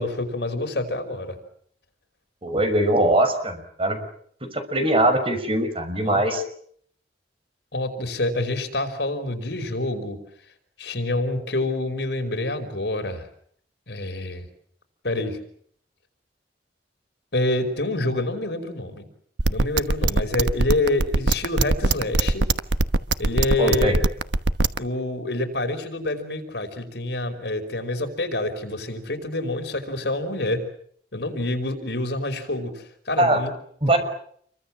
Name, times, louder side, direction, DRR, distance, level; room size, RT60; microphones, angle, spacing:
voice 1, 0.0-1.4 6.0-6.2 7.7-10.2 10.8-13.3 13.9-14.5 15.0-15.4 17.3-19.0 19.5-22.4 23.2-24.0 24.8-30.6 31.1-33.5, left 2 dB, 70° left, 6 dB, 5.2 m, -27 dB
voice 2, 2.4-4.0 4.5-6.4 23.6-24.0 33.2-33.4 33.8-34.0, right 1 dB, 35° right, 8 dB, 5.8 m, -21 dB
sound 1, 19.4-24.8, right 2 dB, 90° right, 1.2 m, -20 dB
29.0 x 23.5 x 7.5 m, 0.64 s
head